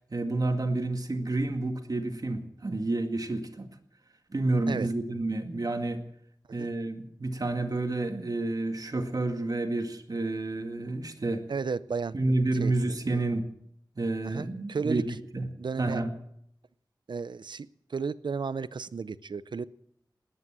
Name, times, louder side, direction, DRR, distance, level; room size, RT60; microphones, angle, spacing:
voice 1, 0.1-3.7 4.3-6.0 6.5-11.4 12.1-13.5 14.0-15.0 15.3-15.5 15.8-16.1, right 2 dB, 55° right, 5 dB, 2.0 m, -29 dB
voice 2, 11.5-12.2 12.6-12.7 13.1-13.2 14.2-15.0 15.6-16.0 17.1-19.6, right 5 dB, 85° right, 17 dB, 0.6 m, -33 dB
19.5 x 9.9 x 7.5 m, 0.72 s
wide cardioid pair, 55°, 8 cm